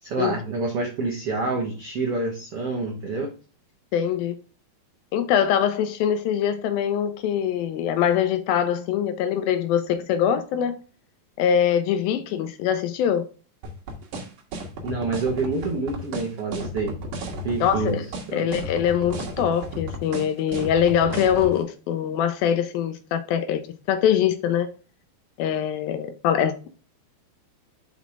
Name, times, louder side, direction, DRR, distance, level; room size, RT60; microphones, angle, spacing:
voice 1, 0.0-3.3 14.8-17.0 17.4-18.5, right 3 dB, 80° right, 1.3 m, -27 dB
voice 2, 3.9-4.4 5.1-10.8 11.4-13.2 17.6-18.0 18.3-23.6 23.9-24.7 25.4-26.7, left 9 dB, 80° left, 2.2 m, -23 dB
sound 1, 13.6-21.5, right 1 dB, 60° right, 2.7 m, -33 dB
6.1 x 5.7 x 3.5 m
omnidirectional pair, 4.7 m